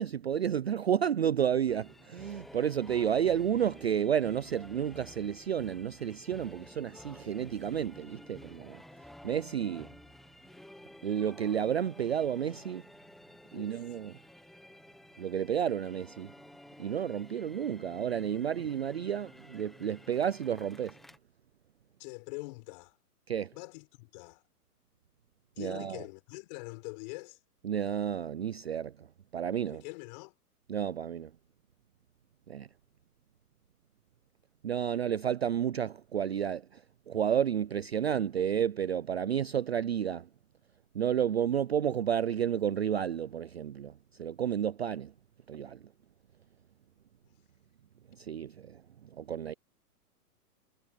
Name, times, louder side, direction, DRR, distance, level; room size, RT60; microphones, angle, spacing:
voice 1, 0.0-8.8 9.2-9.9 11.0-12.8 13.5-14.1 15.2-16.3 16.8-20.9 23.3-23.5 25.6-26.0 27.6-29.1 29.3-29.8 30.7-31.3 32.5-32.7 34.6-36.8 37.1-40.3 40.9-43.9 44.2-45.1 45.5-45.8 48.2-48.8 49.2-49.5, right 9 dB, 45° right, 0.4 m, -31 dB
sound 1, 1.7-21.2, left 1 dB, ahead, 0.9 m, -53 dB
voice 2, 22.0-23.0 23.5-24.4 25.6-27.4 29.7-30.3, left 27 dB, 25° left, 5.8 m, -44 dB
hypercardioid pair, 170°, 47 cm